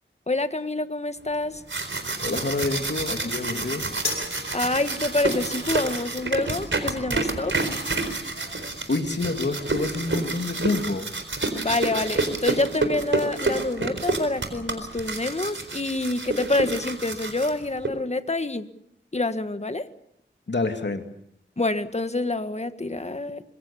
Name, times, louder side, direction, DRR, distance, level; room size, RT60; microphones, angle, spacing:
voice 1, 0.3-1.6 4.5-7.6 11.6-18.7 19.1-19.9 21.6-23.4, left 2 dB, 35° left, 10 dB, 1.6 m, -27 dB
sound 1, 1.5-17.9, right 3 dB, 75° right, 4.2 m, -29 dB
voice 2, 2.2-3.9 8.9-11.1 20.5-21.0, left 3 dB, 60° left, 5 dB, 2.5 m, -27 dB
sound 2, 4.0-10.6, left 3 dB, 90° left, 6.9 m, -40 dB
25.5 x 22.5 x 7.1 m, 0.73 s
wide cardioid pair, 75°, 20 cm